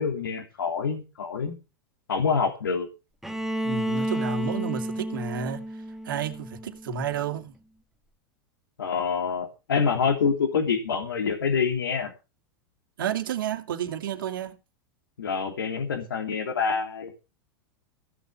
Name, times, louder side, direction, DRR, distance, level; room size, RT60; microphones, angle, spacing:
voice 1, 0.0-1.6 2.1-2.9 8.8-12.1 15.2-17.1, left 6 dB, 85° left, 2.8 m, -26 dB
Bowed string instrument, 3.2-7.1, right 1 dB, ahead, 2.0 m, -31 dB
voice 2, 3.6-5.6 6.0-7.5 13.0-14.6, right 7 dB, 75° right, 2.5 m, -31 dB
16.0 x 7.0 x 6.8 m
hypercardioid pair, 95°, 11 cm